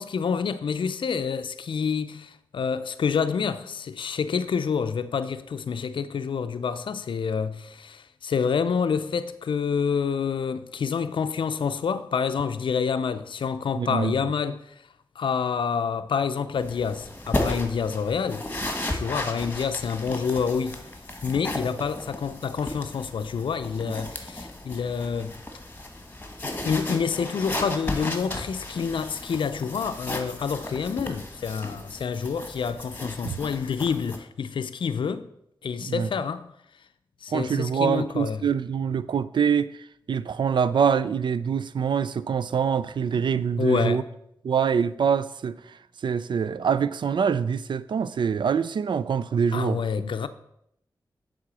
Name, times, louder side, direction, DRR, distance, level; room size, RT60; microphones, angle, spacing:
voice 1, 0.0-14.7 15.2-18.5 18.9-20.8 21.2-25.4 26.4-35.3 35.6-36.5 37.2-38.4 43.6-44.0 49.5-50.3, left 6 dB, 75° left, 0.5 m, -28 dB
voice 2, 13.8-14.1 23.8-23.9 33.2-33.4 35.8-36.1 37.3-44.0 44.4-49.8, right 7 dB, 65° right, 0.4 m, -25 dB
sound 1, 16.6-34.2, left 1 dB, 20° left, 1.4 m, -35 dB
7.4 x 3.7 x 6.2 m
cardioid pair, 45°, 9 cm